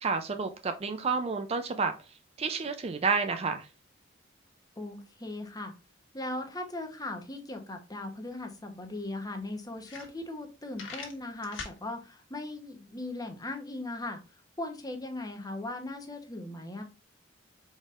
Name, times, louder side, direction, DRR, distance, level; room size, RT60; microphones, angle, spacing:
voice 1, 0.0-1.9 2.4-3.7, right 4 dB, 30° right, 0.4 m, -30 dB
voice 2, 4.8-5.7 6.1-16.8, left 2 dB, 20° left, 0.9 m, -38 dB
sound 1, 8.4-8.5 8.8-8.9 9.4-9.5 9.8-10.5 10.7-11.8, left 4 dB, 70° left, 1.4 m, -41 dB
5.1 x 4.1 x 2.4 m
head